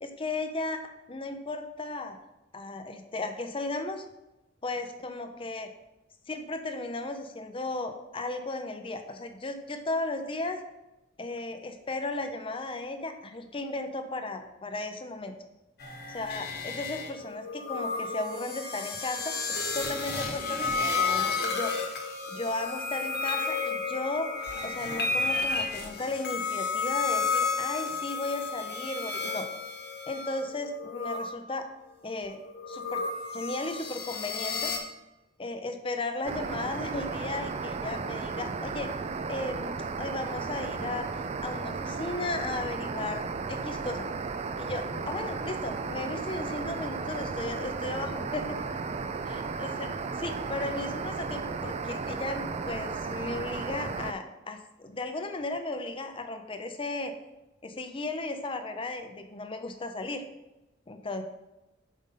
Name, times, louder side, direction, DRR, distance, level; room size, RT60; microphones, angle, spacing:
voice 1, 0.0-2.2 2.5-4.1 4.6-5.7 6.3-10.6 11.2-15.3 16.1-21.7 22.3-24.3 24.6-29.5 30.1-31.7 32.0-32.4 32.7-33.0 33.3-34.7 35.4-38.9 39.3-43.2 43.5-44.0 44.6-48.6 49.3-57.1 57.6-60.2 60.9-61.2, left 2 dB, 30° left, 7 dB, 0.6 m, -35 dB
sound 1, 15.8-31.3 32.2-34.8, left 4 dB, 55° left, 1.1 m, -32 dB
sound 2, 36.2-54.1, right 4 dB, 35° right, 0.3 m, -34 dB
5.4 x 5.1 x 5.4 m, 1.0 s
head